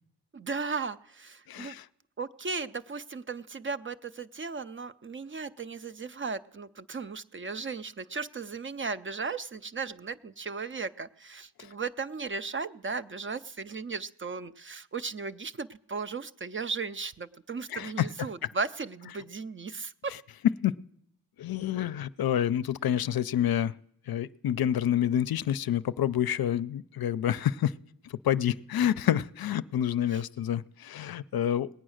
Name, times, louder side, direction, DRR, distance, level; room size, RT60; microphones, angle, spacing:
voice 1, 0.3-1.8 2.2-20.1 30.1-30.2, right 4 dB, 30° right, 13 dB, 0.4 m, -36 dB
voice 2, 1.5-1.9 17.7-18.1 20.6-20.7 21.4-23.7 24.1-27.7 28.2-31.7, left 10 dB, 65° left, 15 dB, 0.5 m, -28 dB
19.5 x 8.8 x 6.4 m, 0.74 s
cardioid pair, 75°, 40 cm